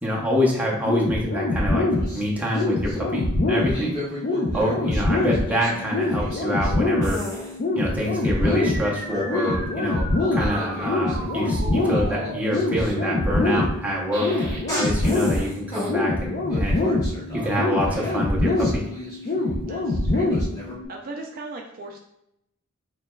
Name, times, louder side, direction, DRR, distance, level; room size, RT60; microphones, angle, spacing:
voice 1, 0.0-1.9 2.1-3.9 4.5-7.2 7.7-14.3 14.7-16.9 17.3-18.8, equal, 5° right, -4 dB, 0.7 m, -26 dB
sound 1, 0.9-20.9, left 2 dB, 40° left, 0.5 m, -25 dB
sound 2, 1.9-3.0 3.5-6.7 7.0-7.6 8.1-9.6 9.9-15.9 16.5-19.7 20.1-20.7, equal, 20° left, 1.0 m, -35 dB
sound 3, 8.6-13.6, right 1 dB, 25° right, 1.0 m, -36 dB
voice 2, 19.7-20.4 20.9-22.0, right 2 dB, 45° right, 0 dB, 0.4 m, -39 dB
6.2 x 2.3 x 2.2 m, 0.79 s
head